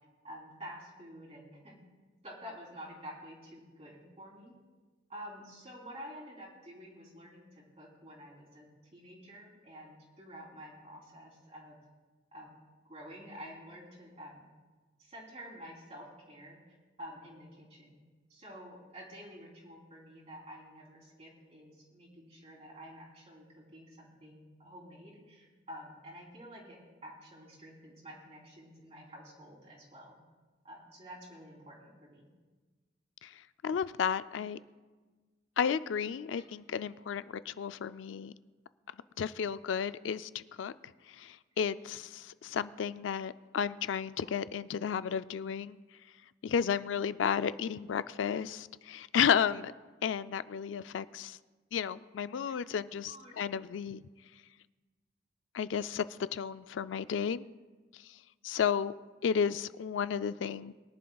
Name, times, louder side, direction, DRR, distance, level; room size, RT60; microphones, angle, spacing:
voice 1, 0.2-1.8 2.2-4.5 5.1-11.8 12.3-12.6 12.9-14.4 15.0-16.6 17.0-18.0 18.3-23.4 23.7-30.2 30.6-32.3 36.3-36.4 52.4-52.6 53.1-53.3, equal, 35° right, -3 dB, 3.4 m, -49 dB
voice 2, 33.6-34.6 35.6-38.3 39.2-40.7 41.2-45.8 46.4-49.7 50.0-51.4 51.7-54.0 55.5-56.0 56.3-57.4 58.4-58.9 59.2-60.7, left 7 dB, 80° left, 14 dB, 0.4 m, -32 dB
22.5 x 11.0 x 2.3 m, 1.3 s
head